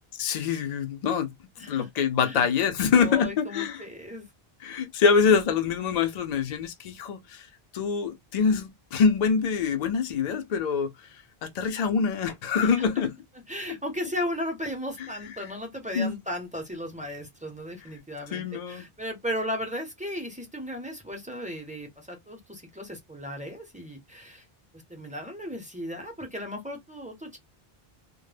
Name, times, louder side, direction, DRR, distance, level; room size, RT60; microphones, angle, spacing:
voice 1, 0.2-1.3 1.7-3.8 4.6-7.5 7.7-11.1 11.4-13.1 15.0-15.1 15.9-16.2 18.3-18.9, left 6 dB, 50° left, 0.5 m, -25 dB
voice 2, 1.6-1.9 2.2-2.5 2.9-4.3 13.5-24.4 24.9-27.4, equal, 10° right, 0.5 m, -35 dB
2.1 x 2.0 x 3.2 m
omnidirectional pair, 1.1 m